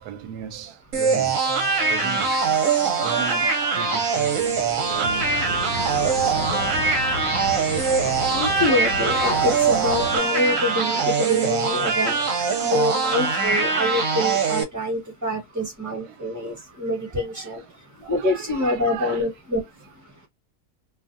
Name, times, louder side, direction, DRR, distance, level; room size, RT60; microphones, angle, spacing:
voice 1, 0.0-1.4 1.9-2.7 3.0-8.5 15.8-16.6 17.1-17.6 18.0-19.2, right 9 dB, 90° right, 1.1 m, -38 dB
sound 1, 0.9-14.6, right 5 dB, 65° right, 1.0 m, -22 dB
Boat Water vehicle, 5.0-10.2, left 3 dB, 70° left, 1.4 m, -32 dB
voice 2, 8.3-12.2 12.6-17.6 18.1-19.6, left 1 dB, 10° right, 1.1 m, -25 dB
2.6 x 2.4 x 2.6 m
omnidirectional pair, 1.6 m